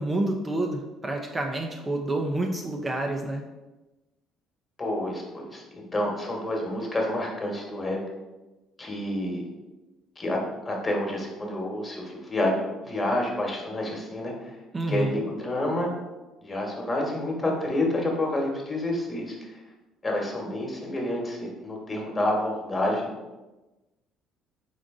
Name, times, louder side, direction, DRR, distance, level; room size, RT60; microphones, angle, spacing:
voice 1, 0.0-3.4 14.7-15.3, right 2 dB, 25° right, 2 dB, 0.6 m, -28 dB
voice 2, 4.8-8.0 8.8-9.4 10.2-10.4 10.6-14.6 14.9-15.9 16.4-19.6 20.0-23.1, left 1 dB, 25° left, 0 dB, 1.4 m, -29 dB
3.8 x 3.7 x 3.7 m, 1.1 s
supercardioid pair, 75°, 0 cm